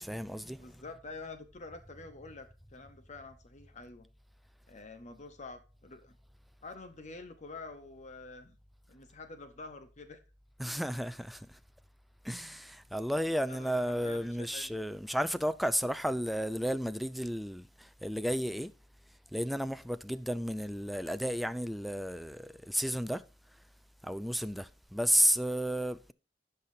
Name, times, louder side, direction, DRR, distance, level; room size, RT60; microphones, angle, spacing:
voice 1, 0.0-0.7 10.6-11.6 12.2-18.7 19.3-23.2 24.0-26.1, equal, ahead, 0.4 m, -32 dB
voice 2, 0.6-4.1 4.7-6.2 6.6-8.6 8.9-10.2 13.5-14.7, left 3 dB, 40° left, 0.9 m, -47 dB
17.0 x 5.8 x 2.6 m
head